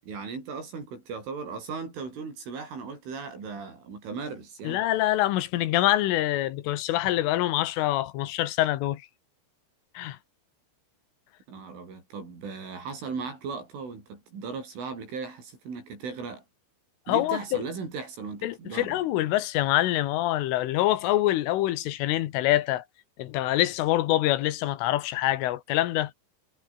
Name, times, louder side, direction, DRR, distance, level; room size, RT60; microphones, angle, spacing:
voice 1, 0.0-4.8 11.5-16.4 17.1-19.0, right 5 dB, 80° right, 10.5 m, -37 dB
voice 2, 4.7-9.0 10.0-10.2 17.1-17.6 18.4-22.8 23.2-26.1, left 15 dB, 90° left, 4.0 m, -25 dB
omnidirectional pair, 5.6 m